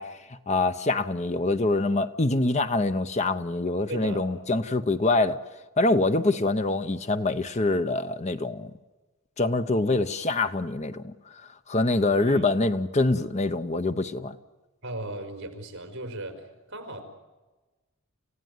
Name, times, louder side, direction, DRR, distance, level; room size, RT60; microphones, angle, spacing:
voice 1, 0.0-5.4 5.8-8.7 9.4-11.4 11.7-14.4, left 2 dB, 30° left, 10 dB, 0.8 m, -25 dB
voice 2, 3.9-4.3 12.2-12.4 14.8-17.0, right 1 dB, 55° right, 6 dB, 4.6 m, -37 dB
29.5 x 16.5 x 9.5 m, 1.2 s
head